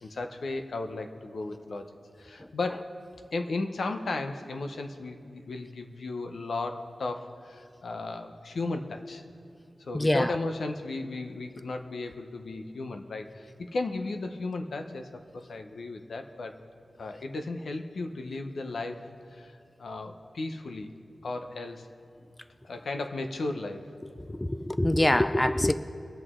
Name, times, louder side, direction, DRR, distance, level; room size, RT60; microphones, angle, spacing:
voice 1, 0.0-1.9 2.2-2.9 3.3-9.2 9.9-16.6 17.0-19.0 19.3-21.0 21.2-21.9 22.6-23.9, left 2 dB, 85° left, 0.9 m, -35 dB
voice 2, 9.9-10.4 24.3-25.7, left 1 dB, 15° left, 0.4 m, -24 dB
22.5 x 8.0 x 3.8 m
wide cardioid pair, 105°, 0 cm